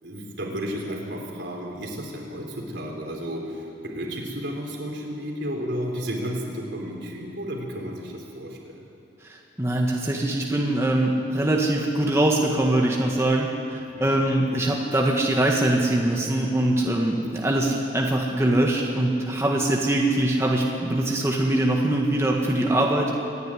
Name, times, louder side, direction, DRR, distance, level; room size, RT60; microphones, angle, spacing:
voice 1, 0.0-8.8 13.8-14.2, equal, 70° right, 0 dB, 3.8 m, -33 dB
voice 2, 9.3-23.1, right 1 dB, 15° right, -1 dB, 1.5 m, -23 dB
25.0 x 10.5 x 9.8 m, 2.6 s
head